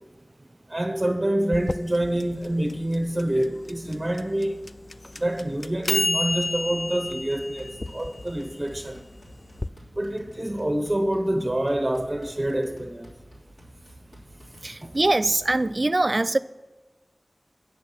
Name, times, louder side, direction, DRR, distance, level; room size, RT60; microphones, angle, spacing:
voice 1, 0.7-4.6 5.1-9.0 9.9-13.1 14.8-14.9, right 1 dB, 25° right, 3 dB, 1.1 m, -26 dB
sound 1, 1.5-9.7, left 2 dB, 40° left, 0.3 m, -31 dB
sound 2, 7.0-15.8, equal, 75° left, 3.3 m, -50 dB
voice 2, 14.6-16.4, right 2 dB, 45° right, 14 dB, 0.4 m, -23 dB
9.4 x 6.4 x 5.9 m, 1.2 s
wide cardioid pair, 65°, 0 cm